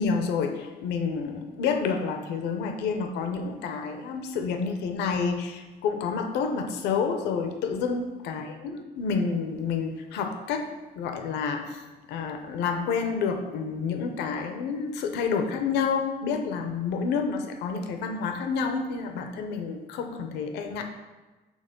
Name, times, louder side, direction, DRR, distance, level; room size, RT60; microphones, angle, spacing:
voice 1, 0.0-10.7 11.0-11.8 12.1-20.8, left 5 dB, 85° left, 6 dB, 0.7 m, -29 dB
6.4 x 3.6 x 5.2 m, 1.2 s
cardioid pair, 110°, 17 cm